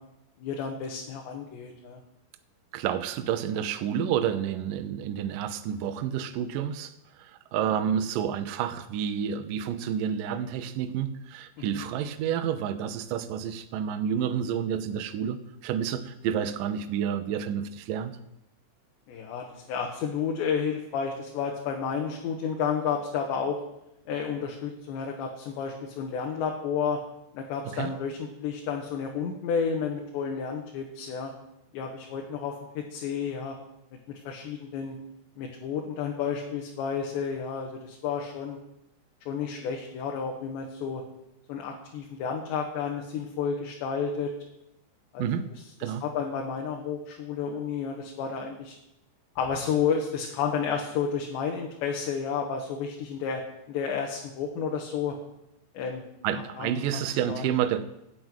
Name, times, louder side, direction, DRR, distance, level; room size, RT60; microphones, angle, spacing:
voice 1, 0.4-2.0 11.6-11.8 19.1-23.6 24.1-27.0 27.4-31.3 31.7-33.6 34.1-35.0 35.4-38.6 39.3-41.0 41.5-44.3 45.1-45.3 45.8-48.8 49.4-53.4 53.7-55.2 55.8-56.0 56.3-57.5, left 6 dB, 75° left, 1 dB, 3.6 m, -31 dB
voice 2, 2.7-6.9 7.2-18.2 27.7-27.9 45.2-45.5 45.8-46.0 56.2-57.8, right 9 dB, 80° right, 9 dB, 1.9 m, -29 dB
14.0 x 7.8 x 9.2 m, 0.85 s
omnidirectional pair, 5.2 m